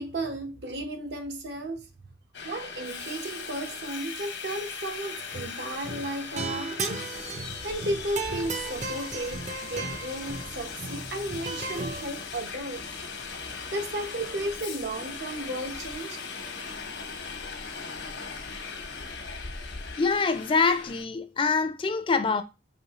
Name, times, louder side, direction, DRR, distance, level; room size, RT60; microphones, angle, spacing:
voice 1, 0.0-1.9 2.4-6.8 7.6-12.9 13.7-16.2, right 1 dB, 70° right, 0.9 m, -34 dB
Subway metro underground, 2.3-21.0, left 5 dB, 80° left, 1.0 m, -39 dB
sound 1, 5.2-5.6 5.8-12.0, right 3 dB, 40° right, 0.5 m, -35 dB
voice 2, 20.0-22.4, left 4 dB, 30° left, 0.4 m, -25 dB
5.3 x 3.0 x 2.9 m
head